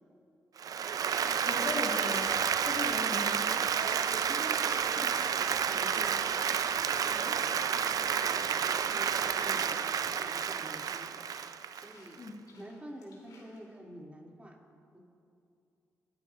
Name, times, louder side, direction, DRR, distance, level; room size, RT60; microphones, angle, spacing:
Applause, 0.6-12.3, right 7 dB, 65° right, 0.4 m, -30 dB
sound 1, 1.1-13.6, left 3 dB, 75° left, 3.0 m, -56 dB
voice 1, 1.4-2.3 2.6-3.7 12.2-12.3, left 2 dB, 50° left, 0 dB, 1.5 m, -38 dB
Stream / Liquid, 2.2-9.2, right 4 dB, 85° right, 1.3 m, -56 dB
voice 2, 2.9-3.2 4.2-11.1 11.7-12.2 12.5-14.6 14.9-15.0, right 1 dB, 20° right, -2 dB, 2.5 m, -48 dB
25.0 x 9.3 x 2.5 m, 2.5 s
supercardioid pair, 50°, 7 cm